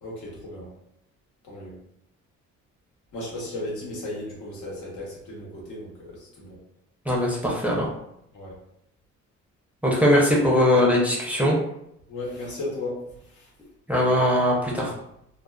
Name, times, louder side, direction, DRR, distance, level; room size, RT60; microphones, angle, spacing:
voice 1, 0.0-0.7 1.4-1.8 3.1-6.6 8.3-8.6 12.1-13.5, left 1 dB, 75° left, -4 dB, 1.0 m, -35 dB
voice 2, 7.1-7.9 9.8-11.6 13.9-14.9, left 1 dB, 5° right, -4 dB, 0.6 m, -20 dB
2.5 x 2.2 x 2.3 m, 0.78 s
cardioid pair, 90°, 30 cm